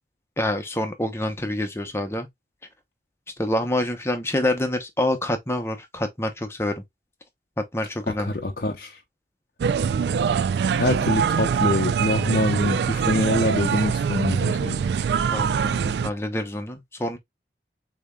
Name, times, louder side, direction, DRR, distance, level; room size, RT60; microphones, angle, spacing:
voice 1, 0.4-2.3 3.4-6.8 7.6-8.3 15.3-17.2, left 1 dB, 15° left, 0.8 m, -27 dB
voice 2, 8.2-9.0 10.7-14.8, left 2 dB, 50° left, 0.6 m, -25 dB
sound 1, 9.6-16.1, right 6 dB, 75° right, 0.3 m, -23 dB
6.8 x 2.9 x 2.3 m
head